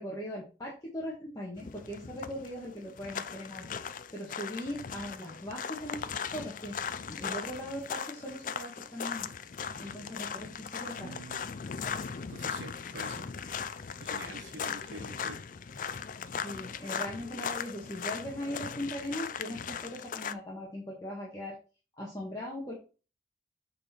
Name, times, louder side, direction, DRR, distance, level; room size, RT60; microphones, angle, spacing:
voice 1, 0.0-3.6 4.1-6.0 6.3-6.8 7.1-9.3 9.8-11.1 16.3-21.6 22.0-22.7, equal, 20° left, 1.7 m, -39 dB
sound 1, 1.6-20.3, left 6 dB, 45° left, 0.4 m, -38 dB
voice 2, 10.8-11.6 12.3-13.3 14.0-15.4, right 2 dB, 80° right, 1.2 m, -46 dB
8.0 x 4.3 x 4.4 m
head